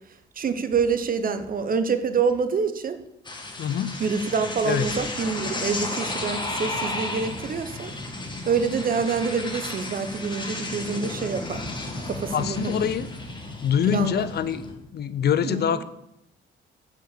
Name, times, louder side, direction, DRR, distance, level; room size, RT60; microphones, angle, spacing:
voice 1, 0.4-3.0 4.0-7.9 8.4-11.6 12.1-12.8 13.9-14.2 15.4-15.8, right 5 dB, 45° right, 10 dB, 1.0 m, -26 dB
sound 1, 3.2-14.7, left 2 dB, 25° left, 1.6 m, -33 dB
voice 2, 3.6-4.0 4.6-4.9 12.3-13.1 13.6-14.7 14.9-15.8, left 8 dB, 55° left, 14 dB, 0.7 m, -24 dB
7.2 x 5.9 x 6.9 m, 0.83 s
cardioid pair, 90°, 20 cm